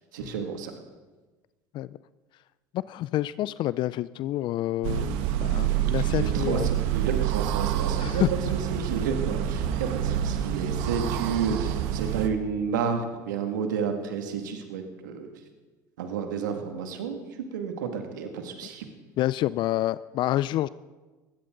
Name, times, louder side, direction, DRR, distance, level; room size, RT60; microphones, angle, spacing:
voice 1, 0.1-0.7 5.9-8.2 8.5-15.3 16.0-18.9, right 6 dB, 85° right, 4 dB, 2.2 m, -31 dB
voice 2, 2.7-6.7 8.0-8.3 19.2-20.7, left 14 dB, 50° left, 18 dB, 0.4 m, -28 dB
sound 1, 4.8-12.3, right 10 dB, 70° right, 1.4 m, -27 dB
20.5 x 16.5 x 3.9 m, 1.2 s
hypercardioid pair, 80°, 10 cm